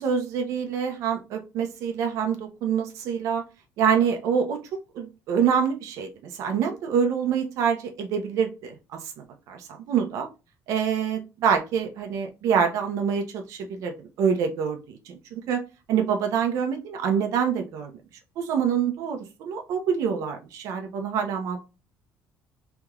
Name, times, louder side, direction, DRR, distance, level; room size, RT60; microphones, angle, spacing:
voice 1, 0.0-3.4 3.8-4.6 4.9-8.7 9.2-9.6 9.9-10.3 10.7-13.9 14.2-15.6 15.9-17.9 18.4-21.6, right 7 dB, 65° right, 4 dB, 0.7 m, -26 dB
3.4 x 2.9 x 2.4 m, 0.29 s
cardioid pair, 160°, 6 cm